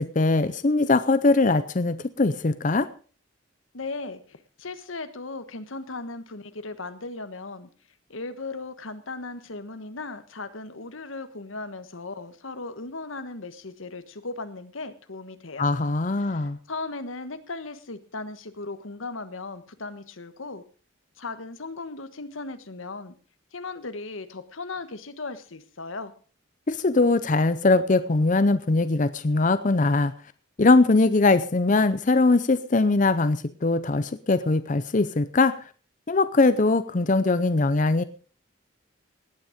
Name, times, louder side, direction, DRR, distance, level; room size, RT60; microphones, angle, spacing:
voice 1, 0.0-2.9 15.6-16.6 26.7-30.1 30.6-35.5 36.1-38.0, left 3 dB, 40° left, 13 dB, 0.6 m, -21 dB
voice 2, 3.7-7.7 8.1-15.7 16.2-20.6 21.2-23.1 23.5-26.1, left 3 dB, 90° left, 11 dB, 1.4 m, -37 dB
18.0 x 9.2 x 5.1 m, 0.40 s
head